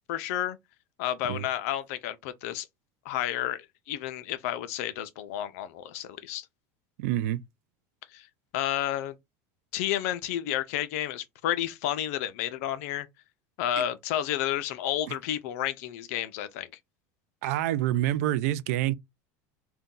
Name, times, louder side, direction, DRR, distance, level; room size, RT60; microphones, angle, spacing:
voice 1, 0.1-0.6 1.0-2.7 3.0-6.5 8.1-8.3 8.5-9.2 9.7-13.1 13.6-16.7, left 12 dB, 70° left, 0.5 m, -31 dB
voice 2, 7.0-7.4 15.1-15.2 17.4-19.0, right 13 dB, 75° right, 0.4 m, -27 dB
2.6 x 2.3 x 3.6 m
supercardioid pair, 150°, 8 cm